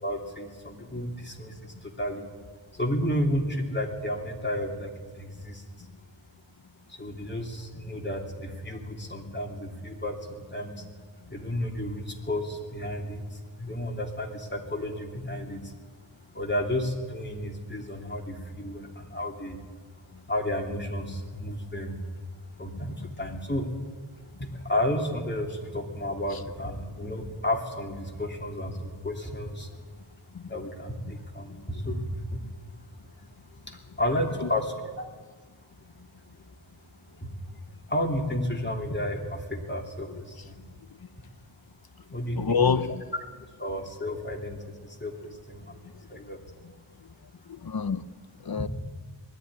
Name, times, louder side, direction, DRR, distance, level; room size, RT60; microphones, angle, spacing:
voice 1, 0.0-2.3 2.7-5.6 6.9-10.8 11.3-15.7 16.3-19.6 20.3-22.0 22.6-23.7 24.4-29.8 30.5-32.4 33.7-35.0 37.2-37.3 37.9-40.6 42.1-42.6 43.6-45.8 46.1-46.4 48.6-48.7, left 1 dB, 25° left, 1 dB, 3.1 m, -32 dB
voice 2, 42.4-43.0 47.5-48.0 48.4-48.7, left 6 dB, 50° left, 11 dB, 1.0 m, -26 dB
20.0 x 13.5 x 9.9 m, 1.5 s
wide cardioid pair, 70°, 47 cm